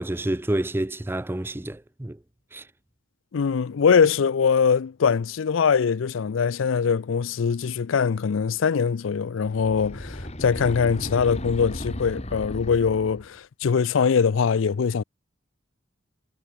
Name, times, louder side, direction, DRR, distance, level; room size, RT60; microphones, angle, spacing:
voice 1, 0.0-2.2 2.5-2.7, right 1 dB, 10° right, 0.4 m, -28 dB
voice 2, 3.3-15.0, left 6 dB, 80° left, 0.4 m, -22 dB
sound 1, 9.4-13.4, left 1 dB, 35° left, 3.4 m, -35 dB
head